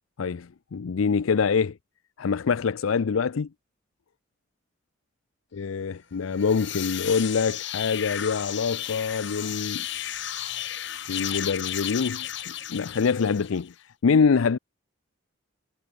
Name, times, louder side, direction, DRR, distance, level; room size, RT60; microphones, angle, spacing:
voice 1, 0.2-1.8 2.2-3.5 5.5-9.9 11.1-13.7 14.0-14.6, left 5 dB, 90° left, 0.5 m, -25 dB
sound 1, 6.2-13.7, left 11 dB, 60° left, 2.0 m, -34 dB
head